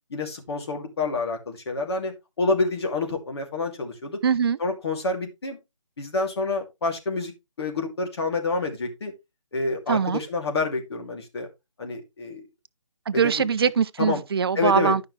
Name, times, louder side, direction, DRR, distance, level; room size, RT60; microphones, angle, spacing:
voice 1, 0.1-4.2 4.6-5.6 6.0-7.3 7.6-9.1 9.5-11.5 11.8-12.4 13.1-13.3 14.0-14.2 14.5-14.9, left 3 dB, 50° left, 2.7 m, -28 dB
voice 2, 4.2-4.6 9.9-10.2 13.1-15.0, right 6 dB, 45° right, 0.5 m, -22 dB
11.5 x 5.6 x 3.3 m
hypercardioid pair, 160°, 17 cm